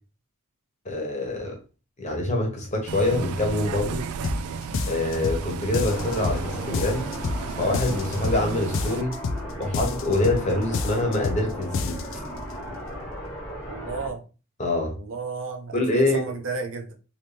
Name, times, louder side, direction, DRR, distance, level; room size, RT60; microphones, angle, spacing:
voice 1, 0.8-1.6 2.0-4.0 4.9-7.1 7.6-9.1 9.6-12.2 14.6-14.9 15.7-16.2, left 2 dB, 35° left, 1.0 m, -25 dB
Bus, 2.9-9.0, right 5 dB, 85° right, 0.3 m, -34 dB
sound 1, 4.2-4.4 4.7-5.4 5.7-6.4 6.7-7.4 7.7-8.4 8.7-9.4 9.7-10.4 10.7-11.4 11.7-12.2, left 4 dB, 60° left, 0.3 m, -28 dB
sound 2, 5.9-14.1, equal, 15° left, 1.1 m, -36 dB
voice 2, 13.7-14.2 14.9-16.9, right 4 dB, 60° right, 0.7 m, -33 dB
3.0 x 2.7 x 3.3 m
head